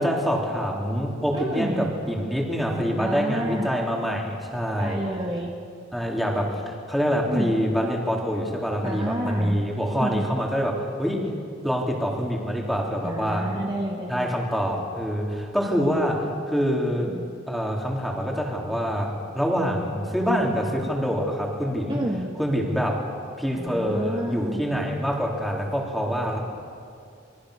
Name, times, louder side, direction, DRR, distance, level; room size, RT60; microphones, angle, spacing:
voice 1, 0.0-5.0 5.9-11.3 11.6-13.6 14.1-17.1 17.5-22.0 22.4-23.1 23.4-26.4, equal, ahead, -1 dB, 3.5 m, -25 dB
voice 2, 1.3-1.9 3.0-3.7 4.8-5.5 7.3-7.5 8.8-9.6 10.0-10.3 13.0-14.4 17.0-17.2 21.9-22.3 23.6-24.6, right 1 dB, 25° right, -1 dB, 1.8 m, -29 dB
27.5 x 23.0 x 6.6 m, 2.3 s
head